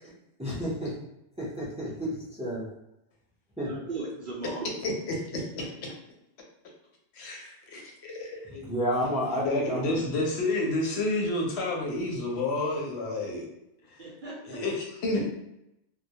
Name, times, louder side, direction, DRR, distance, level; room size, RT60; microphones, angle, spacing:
voice 1, 0.4-0.9 1.4-2.1 2.4-2.7 3.6-3.9 8.7-10.0, equal, 10° right, -7 dB, 0.4 m, -30 dB
voice 2, 3.6-4.7 5.4-5.7 14.0-14.6 15.2-15.3, right 3 dB, 55° right, -4 dB, 0.6 m, -38 dB
voice 3, 4.8-5.7 7.1-8.7 9.4-13.5 13.8-14.1 14.4-15.2, left 2 dB, 70° left, -1 dB, 0.8 m, -30 dB
2.1 x 2.1 x 2.7 m, 0.83 s
omnidirectional pair, 1.2 m